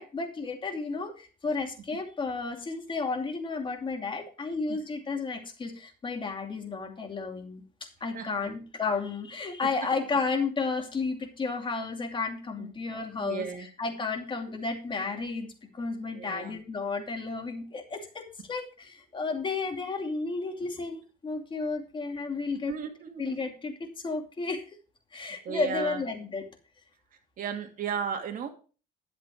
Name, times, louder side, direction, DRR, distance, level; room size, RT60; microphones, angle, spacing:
voice 1, 0.0-7.6 8.0-13.5 13.8-22.8 23.2-24.8 25.1-26.5, left 4 dB, 30° left, 4 dB, 2.6 m, -32 dB
voice 2, 8.1-8.6 12.6-12.7 13.2-13.7 16.1-16.6 22.7-23.4 25.1-26.0 27.4-28.5, right 7 dB, 55° right, 4 dB, 2.7 m, -35 dB
11.0 x 7.8 x 5.0 m, 0.37 s
cardioid pair, 110°, 17 cm